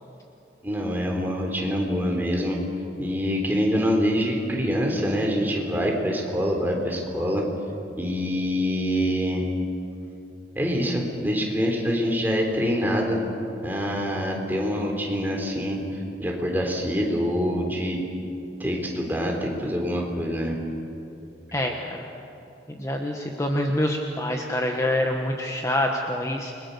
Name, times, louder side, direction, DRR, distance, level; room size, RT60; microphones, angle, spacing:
voice 1, 0.6-2.6 3.0-7.4 8.0-9.5 10.6-13.2 13.6-15.8 16.2-18.0 18.6-20.6, equal, 10° right, 0 dB, 3.7 m, -25 dB
voice 2, 21.5-22.0 22.7-26.5, left 1 dB, 15° left, 1 dB, 1.3 m, -26 dB
29.0 x 22.0 x 6.8 m, 2.8 s
head